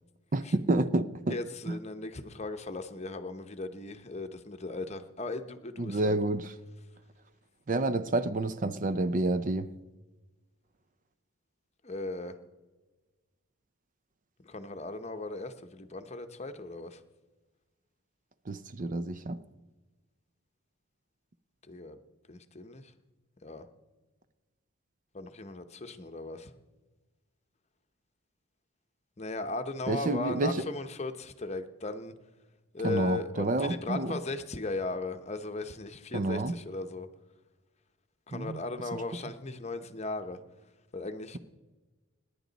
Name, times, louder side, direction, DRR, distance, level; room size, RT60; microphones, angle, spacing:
voice 1, 0.3-1.4 1.7-1.8 5.8-6.5 7.7-9.7 18.5-19.4 29.9-30.6 32.8-34.2 36.1-36.5 38.3-38.6, right 2 dB, 35° right, 0.5 m, -29 dB
voice 2, 1.3-6.1 11.8-12.4 14.4-17.0 21.7-22.0 22.3-22.9 23.4-23.7 25.1-26.5 29.2-32.1 32.7-37.1 38.3-40.4 40.9-41.4, left 3 dB, 30° left, 0.9 m, -37 dB
28.0 x 10.5 x 4.0 m
head